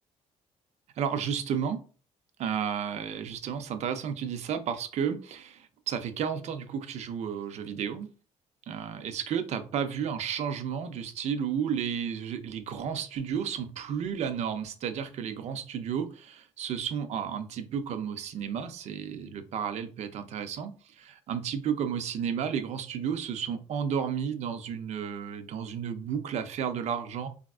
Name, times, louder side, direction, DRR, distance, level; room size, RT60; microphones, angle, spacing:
voice 1, 1.0-1.8 2.4-8.1 8.7-27.3, right 7 dB, 60° right, 9 dB, 0.4 m, -32 dB
3.4 x 2.3 x 2.3 m, 0.38 s
cardioid pair, 105°, 13 cm